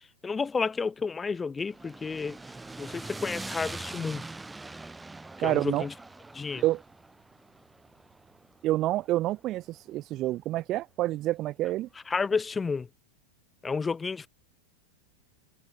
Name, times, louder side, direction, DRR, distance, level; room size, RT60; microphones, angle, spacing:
voice 1, 0.2-2.4 2.8-4.2 5.4-5.9 6.3-6.6 12.1-12.9 13.6-14.3, left 5 dB, 15° left, 1.8 m, -31 dB
sound 1, 1.6-9.8, right 2 dB, 10° right, 5.5 m, -43 dB
voice 2, 5.4-5.9 6.6-6.8 8.6-11.9, right 15 dB, 35° right, 0.5 m, -28 dB
figure-of-eight pair, 90°, 0 cm